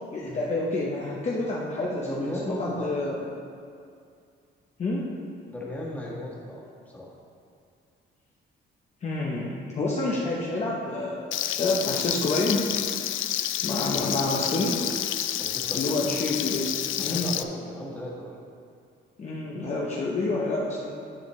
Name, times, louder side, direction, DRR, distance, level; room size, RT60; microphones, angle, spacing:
voice 1, 0.1-3.2 4.8-5.1 9.0-12.7 13.6-14.8 15.7-17.3 19.2-20.9, left 2 dB, 35° left, -4 dB, 0.9 m, -28 dB
voice 2, 1.9-2.9 5.5-7.1 15.4-16.1 17.0-18.4, left 1 dB, 10° left, -5 dB, 1.7 m, -36 dB
Frying (food), 11.3-17.4, left 12 dB, 85° left, 0.4 m, -29 dB
10.0 x 8.6 x 3.2 m, 2.4 s
cardioid pair, 160°, 20 cm